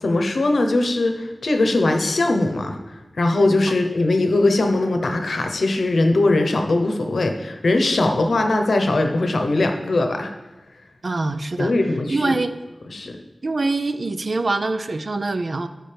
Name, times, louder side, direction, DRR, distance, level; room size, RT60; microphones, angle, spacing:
voice 1, 0.0-2.8 3.2-10.3 11.6-12.3 12.9-13.2, left 2 dB, 85° left, 5 dB, 0.8 m, -20 dB
voice 2, 11.0-11.7 12.1-12.6 13.4-15.7, right 2 dB, 60° right, 9 dB, 0.5 m, -24 dB
13.0 x 6.4 x 3.4 m, 1.2 s
wide cardioid pair, 90°, 0 cm